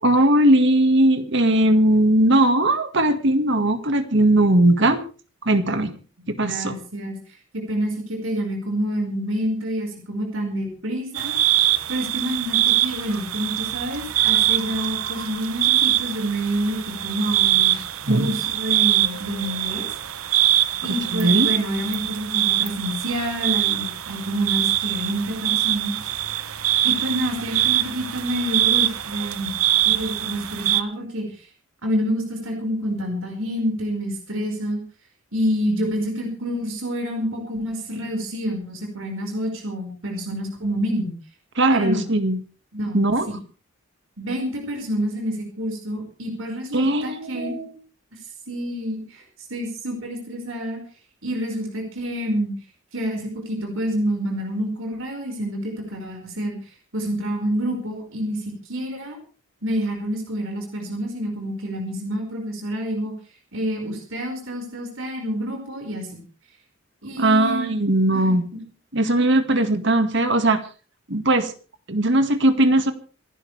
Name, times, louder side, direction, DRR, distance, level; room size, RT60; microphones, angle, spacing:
voice 1, 0.0-5.0 5.4-5.9 6.3-6.7 18.1-18.3 21.1-21.5 41.6-42.4 42.9-43.3 46.7-47.7 67.2-68.5 68.9-70.6 71.1-71.5 71.9-72.9, right 1 dB, 55° right, 8 dB, 1.9 m, -19 dB
voice 2, 6.4-7.2 7.5-11.3 11.9-17.8 18.2-19.9 20.8-26.1 26.8-29.6 29.8-31.5 31.8-34.8 35.3-41.1 41.7-42.0 42.7-43.4 44.2-47.6 48.5-49.2 49.5-50.8 51.2-52.5 52.9-56.6 56.9-59.2 59.6-63.1 63.5-66.2 67.0-67.7 68.1-68.3, equal, 75° right, 2 dB, 5.3 m, -28 dB
sound 1, 11.1-30.8, right 14 dB, 90° right, 0.9 m, -23 dB
27.0 x 12.0 x 3.4 m, 0.38 s
head